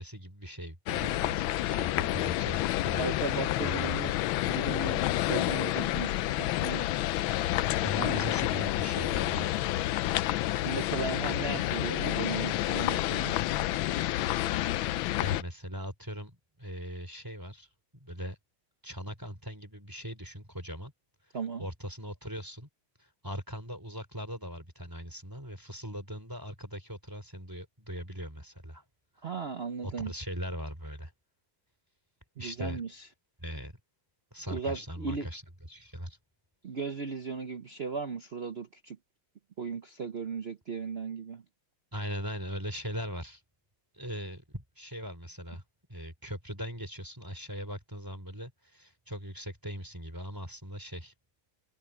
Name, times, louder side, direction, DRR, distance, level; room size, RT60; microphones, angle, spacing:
voice 1, 0.0-3.2 3.6-4.1 7.8-9.5 15.2-17.7 18.0-18.4 18.8-20.9 21.6-22.7 23.0-28.8 29.8-31.1 32.4-32.8 33.4-33.7 34.3-35.4 35.7-36.2 41.9-43.4 43.9-45.6 45.9-51.1, equal, 10° right, 3.3 m, -40 dB
sound 1, 0.9-15.4, left 15 dB, 75° left, 1.4 m, -29 dB
voice 2, 3.0-4.1 4.4-5.0 5.3-6.1 6.4-6.9 8.0-8.3 10.6-13.3 21.3-21.7 29.2-30.1 32.4-33.1 34.5-35.3 36.6-39.0 39.6-41.4, right 5 dB, 65° right, 0.6 m, -36 dB
omnidirectional pair, 2.3 m